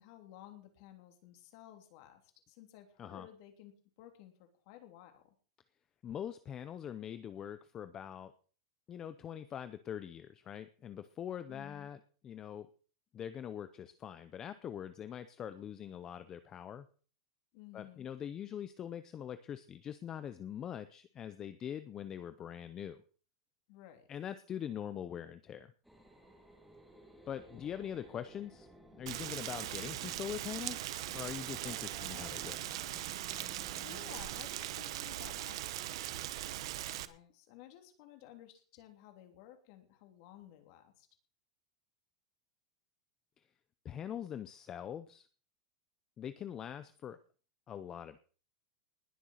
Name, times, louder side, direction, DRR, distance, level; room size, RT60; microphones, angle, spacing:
voice 1, 0.0-3.7 4.0-5.2 11.5-11.9 17.5-18.1 23.7-24.1 33.8-35.7 36.9-41.1, left 12 dB, 40° left, 6 dB, 3.2 m, -55 dB
voice 2, 6.0-8.3 8.9-12.0 12.2-12.7 13.1-16.9 17.7-23.0 24.1-25.7 27.3-32.6 43.4-43.5 43.8-45.3 46.2-47.2 47.7-48.2, left 9 dB, 15° left, 12 dB, 0.6 m, -43 dB
sound 1, 25.8-36.2, right 1 dB, ahead, 2.7 m, -58 dB
Rain, 29.1-37.1, right 14 dB, 55° right, 1.1 m, -40 dB
20.0 x 7.0 x 6.4 m, 0.40 s
supercardioid pair, 175°, 3 cm